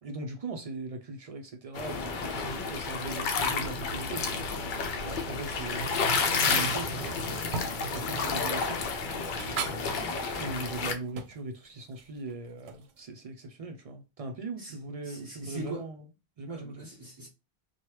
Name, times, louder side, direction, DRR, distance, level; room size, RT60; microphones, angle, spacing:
voice 1, 0.0-4.4 5.0-7.1 7.9-8.8 9.4-16.1 16.4-16.9, right 3 dB, 55° right, 0.4 m, -40 dB
sound 1, 1.7-10.9, left 4 dB, 60° left, 0.6 m, -31 dB
sound 2, 6.2-13.0, right 5 dB, 75° right, 0.8 m, -42 dB
voice 2, 15.0-15.8 16.5-17.3, right 2 dB, 40° right, 1.4 m, -41 dB
3.1 x 2.2 x 2.9 m
omnidirectional pair, 1.1 m